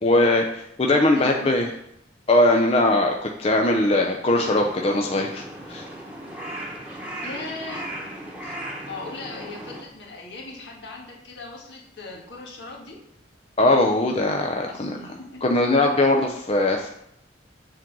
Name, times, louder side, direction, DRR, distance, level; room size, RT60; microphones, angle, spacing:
voice 1, 0.0-1.7 2.3-5.8 13.6-15.0 15.4-16.9, left 2 dB, 30° left, 1 dB, 0.5 m, -20 dB
voice 2, 1.1-1.5 7.2-8.0 8.9-13.0 14.7-15.5, left 3 dB, 70° left, -2 dB, 1.9 m, -38 dB
Crow, 4.3-9.8, right 1 dB, 5° right, 1.2 m, -36 dB
7.4 x 3.8 x 6.1 m, 0.75 s
head